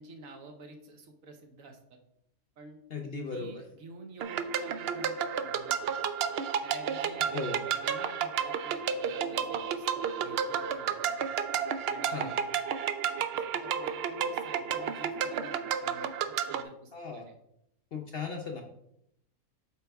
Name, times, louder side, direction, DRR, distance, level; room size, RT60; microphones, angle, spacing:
voice 1, 0.0-2.0 2.6-2.8 3.3-5.8 6.6-7.3 7.7-11.3 11.8-12.5 13.2-17.3, right 3 dB, 65° right, 4 dB, 1.3 m, -50 dB
voice 2, 2.9-3.6 7.3-7.6 12.1-12.3 16.9-17.2 17.9-18.6, left 4 dB, 50° left, 2 dB, 0.7 m, -37 dB
sound 1, 4.2-16.6, right 7 dB, 90° right, 0.5 m, -31 dB
8.0 x 4.6 x 3.5 m, 0.78 s
omnidirectional pair, 1.6 m